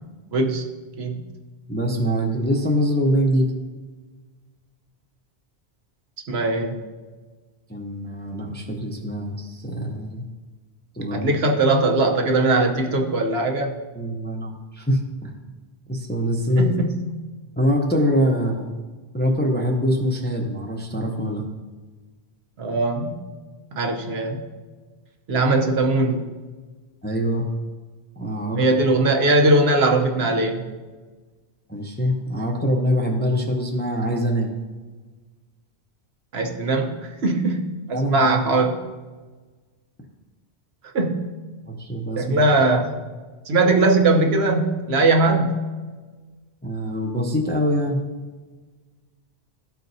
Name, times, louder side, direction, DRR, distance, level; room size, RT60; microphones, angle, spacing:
voice 1, 0.3-0.6 1.0-1.3 6.3-6.8 11.1-13.7 16.6-17.0 22.6-23.2 23.7-24.4 25.3-26.2 28.6-30.6 36.3-38.8 40.9-41.3 42.2-43.0 43.5-45.6, right 2 dB, 70° right, 2 dB, 1.1 m, -20 dB
voice 2, 1.7-3.5 7.7-10.2 10.9-11.3 14.0-15.3 15.9-16.8 17.6-18.7 19.1-21.4 27.0-27.5 28.2-28.6 31.7-34.5 37.9-38.3 41.7-42.2 46.6-48.0, equal, 10° left, 1 dB, 0.5 m, -23 dB
13.0 x 4.5 x 2.6 m, 1.3 s
omnidirectional pair, 1.1 m